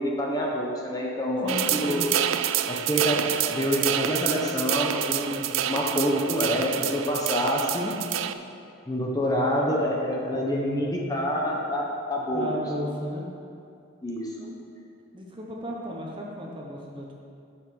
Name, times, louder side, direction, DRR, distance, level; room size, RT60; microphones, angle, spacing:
voice 1, 0.0-2.0 2.7-7.9 8.9-12.6 14.0-14.5, equal, 20° left, -2 dB, 1.0 m, -27 dB
voice 2, 1.4-2.1 12.3-13.3 15.1-17.1, equal, 25° right, -2 dB, 1.0 m, -35 dB
sound 1, 1.5-8.3, right 10 dB, 80° right, 0.4 m, -28 dB
7.9 x 5.8 x 6.9 m, 2.5 s
head